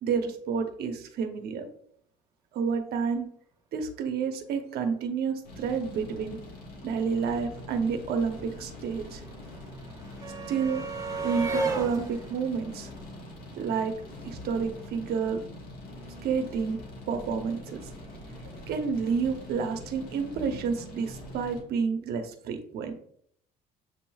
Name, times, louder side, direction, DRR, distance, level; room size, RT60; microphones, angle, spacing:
voice 1, 0.0-1.6 2.5-3.3 3.7-6.4 6.8-9.2 10.5-10.8 11.2-12.9 13.5-13.9 14.2-15.4 16.2-16.8 17.1-17.8 18.5-22.9, right 6 dB, 70° right, 6 dB, 0.8 m, -29 dB
sound 1, 5.4-21.6, left 1 dB, 65° left, 1.6 m, -44 dB
sound 2, 7.7-13.9 15.1-15.2 15.5-15.6, right 3 dB, 20° right, 1.1 m, -35 dB
7.7 x 2.9 x 2.3 m, 0.65 s
cardioid pair, 110°, 17 cm